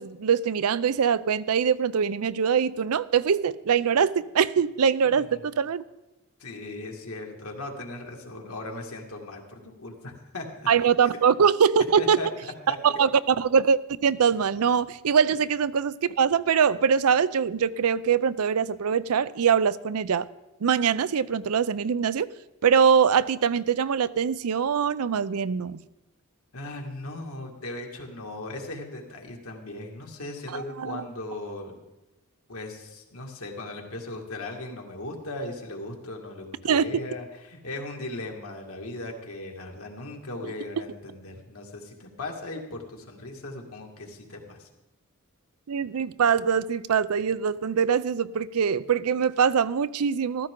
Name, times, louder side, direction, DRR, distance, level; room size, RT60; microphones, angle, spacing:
voice 1, 0.0-5.8 10.7-12.2 12.7-20.3 20.6-22.3 22.6-25.8 30.5-31.0 36.6-36.9 40.4-40.5 45.7-50.5, right 7 dB, 85° right, 17 dB, 0.5 m, -23 dB
voice 2, 5.0-5.4 6.4-10.7 11.0-11.1 12.0-13.0 26.5-31.8 32.5-44.7, left 2 dB, 75° left, 1 dB, 2.1 m, -38 dB
14.5 x 13.5 x 3.8 m, 1.0 s
head